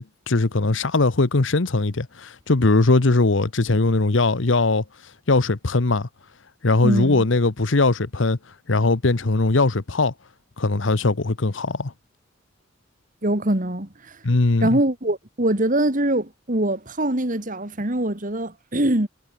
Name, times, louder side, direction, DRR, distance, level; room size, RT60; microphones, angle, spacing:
voice 1, 0.0-4.8 5.3-6.1 6.6-8.4 8.7-10.1 10.6-11.9 14.2-14.8, left 3 dB, 70° left, 1.0 m, -20 dB
voice 2, 6.8-7.3 13.2-14.2 14.6-19.1, right 1 dB, 40° right, 2.4 m, -23 dB
head